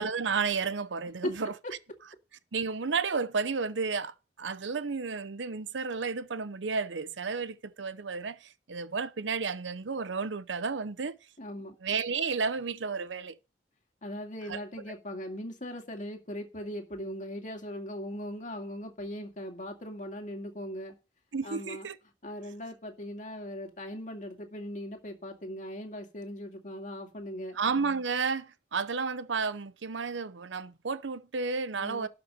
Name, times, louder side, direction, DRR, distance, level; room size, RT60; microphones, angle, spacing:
voice 1, 0.0-1.5 2.5-11.1 11.8-13.3 14.5-14.6 21.3-22.0 27.5-32.1, right 5 dB, 85° right, 0.7 m, -32 dB
voice 2, 11.4-11.8 14.0-21.0 21.4-21.9 22.2-27.6 31.8-32.1, equal, 45° left, 2.2 m, -39 dB
12.5 x 5.8 x 6.3 m
head